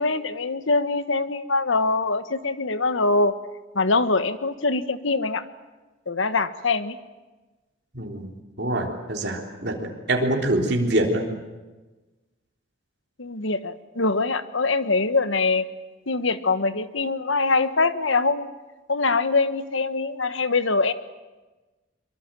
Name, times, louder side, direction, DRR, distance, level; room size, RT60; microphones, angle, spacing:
voice 1, 0.0-3.3 3.7-5.4 6.1-7.0 13.2-15.6 16.1-18.5 18.9-20.9, left 3 dB, 85° left, 12 dB, 1.4 m, -23 dB
voice 2, 7.9-8.3 8.6-11.2, right 1 dB, 55° right, 0 dB, 3.6 m, -25 dB
24.0 x 23.5 x 9.1 m, 1.2 s
head